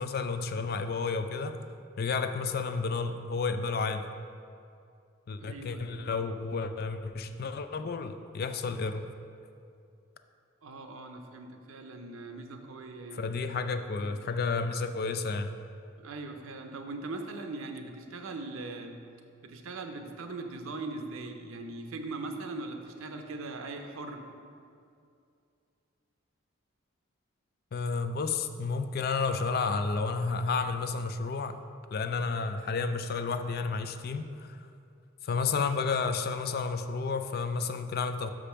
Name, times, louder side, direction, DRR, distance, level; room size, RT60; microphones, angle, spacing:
voice 1, 0.0-1.6 2.0-4.1 5.3-9.1 13.1-15.5 27.7-31.6 31.9-34.6 35.2-38.3, left 4 dB, 50° left, 8 dB, 0.4 m, -31 dB
voice 2, 5.4-6.0 10.6-13.4 14.0-14.2 16.0-19.0 19.4-24.2, right 3 dB, 85° right, 5 dB, 0.7 m, -40 dB
6.1 x 5.1 x 5.7 m, 2.4 s
head